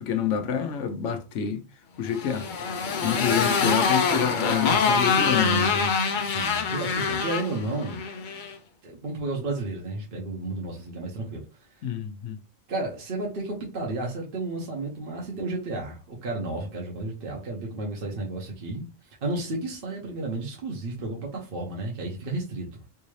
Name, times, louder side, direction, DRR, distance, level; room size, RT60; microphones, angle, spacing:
voice 1, 0.0-1.6 2.0-2.5 3.0-5.9 11.8-12.4, left 7 dB, 75° left, 1.0 m, -27 dB
Motorcycle, 2.1-8.5, left 5 dB, 60° left, 0.5 m, -25 dB
voice 2, 6.2-8.0 8.8-11.9 12.7-18.8 19.2-22.8, right 2 dB, 50° right, 1.0 m, -32 dB
3.4 x 2.7 x 3.1 m
omnidirectional pair, 1.3 m